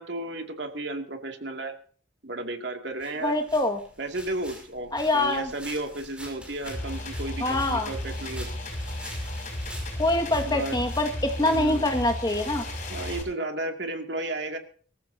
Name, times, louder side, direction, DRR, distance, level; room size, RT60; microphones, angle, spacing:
voice 1, 0.0-1.7 2.2-3.4 4.0-8.5 10.4-10.8 11.4-11.9 12.9-14.6, right 2 dB, 70° right, 4 dB, 2.4 m, -33 dB
sound 1, 3.0-13.0, equal, 5° right, 6.0 m, -47 dB
voice 2, 3.2-3.8 4.9-5.5 7.4-7.9 10.0-12.6, left 1 dB, 20° left, 6 dB, 1.8 m, -25 dB
sound 2, 6.7-13.2, left 1 dB, 45° left, 5.9 m, -34 dB
24.0 x 14.5 x 2.8 m, 0.42 s
head